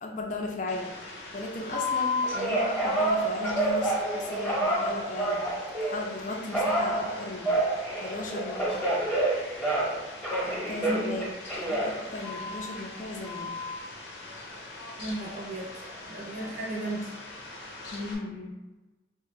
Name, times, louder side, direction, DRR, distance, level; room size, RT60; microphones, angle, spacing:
voice 1, 0.0-0.9 1.3-5.5 5.8-7.6 8.0-9.0 10.5-13.6 17.9-18.6, left 2 dB, 45° left, 2 dB, 0.4 m, -36 dB
Fowl, 0.7-18.2, left 2 dB, 90° left, 0.7 m, -43 dB
Telephone, 1.7-6.1 6.5-10.0 10.2-12.7 13.2-13.7, right 1 dB, ahead, 0.8 m, -28 dB
voice 2, 10.8-11.2 15.0-17.1, right 1 dB, 50° right, -4 dB, 0.6 m, -35 dB
3.2 x 2.1 x 3.1 m, 1.1 s
head